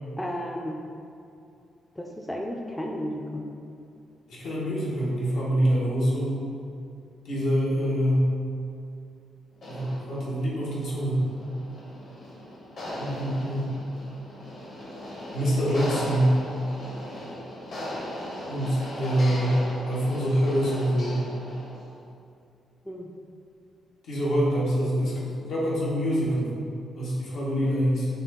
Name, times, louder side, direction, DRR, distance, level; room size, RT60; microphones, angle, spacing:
voice 1, 0.2-0.8 2.0-3.4 22.9-23.1, equal, 10° left, -1 dB, 0.4 m, -33 dB
voice 2, 4.3-6.5 7.2-8.3 9.7-11.2 13.0-13.7 15.3-16.4 18.5-19.6 19.9-21.2 24.0-26.5 27.0-28.1, equal, 80° left, -6 dB, 1.2 m, -25 dB
sound 1, 9.6-21.9, left 1 dB, 55° left, 1.3 m, -38 dB
5.6 x 2.4 x 3.5 m, 2.5 s
cardioid pair, 115°, 0 cm